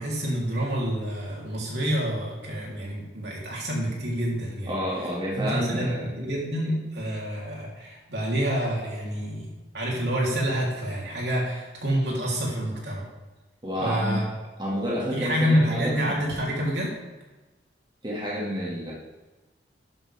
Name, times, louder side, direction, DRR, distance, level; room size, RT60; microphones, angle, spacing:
voice 1, 0.0-4.7 5.3-9.5 9.7-13.0 13.8-14.3 15.1-16.9, equal, 70° right, -3 dB, 3.6 m, -27 dB
voice 2, 4.7-6.1 6.6-6.7 13.6-14.3 14.6-16.1 18.0-18.9, equal, 25° right, -5 dB, 2.3 m, -29 dB
12.5 x 11.0 x 3.6 m, 1.2 s
head